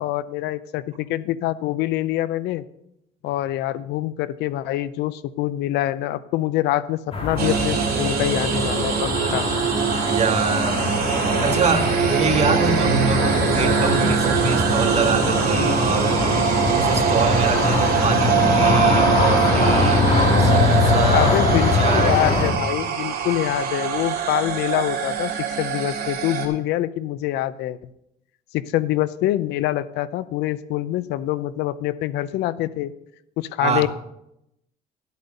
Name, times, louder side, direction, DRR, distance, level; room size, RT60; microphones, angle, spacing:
voice 1, 0.0-2.7 3.2-9.5 21.1-27.8 28.5-32.9 33.4-33.9, left 14 dB, 85° left, 16 dB, 0.6 m, -25 dB
sound 1, 7.1-22.5, left 2 dB, 35° left, 2.4 m, -22 dB
sound 2, 7.4-26.5, right 7 dB, 65° right, 2.8 m, -23 dB
voice 2, 10.0-10.9 11.4-16.2 16.8-20.1 20.4-22.2 33.6-33.9, right 5 dB, 40° right, 4 dB, 1.8 m, -25 dB
12.5 x 8.3 x 5.3 m, 0.80 s
cardioid pair, 110°, 17 cm